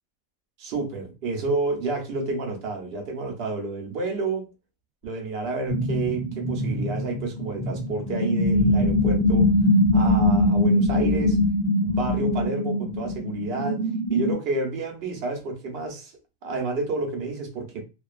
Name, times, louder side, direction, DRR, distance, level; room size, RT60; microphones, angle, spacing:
voice 1, 0.6-4.4 5.0-9.5 9.9-11.4 11.8-13.8 14.1-16.1 16.4-17.8, right 3 dB, 55° right, 0.7 m, -30 dB
sound 1, 5.7-14.3, left 1 dB, 30° left, 0.5 m, -22 dB
2.5 x 2.2 x 2.3 m
omnidirectional pair, 1.5 m